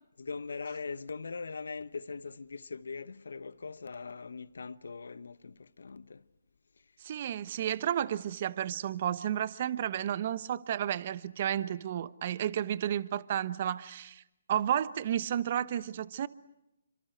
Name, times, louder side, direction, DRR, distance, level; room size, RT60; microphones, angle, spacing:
voice 1, 0.2-6.2, left 4 dB, 75° left, 1.0 m, -41 dB
voice 2, 7.0-14.2 14.5-16.3, right 10 dB, 45° right, 1.1 m, -32 dB
28.0 x 26.0 x 7.9 m
hypercardioid pair, 145°, 0 cm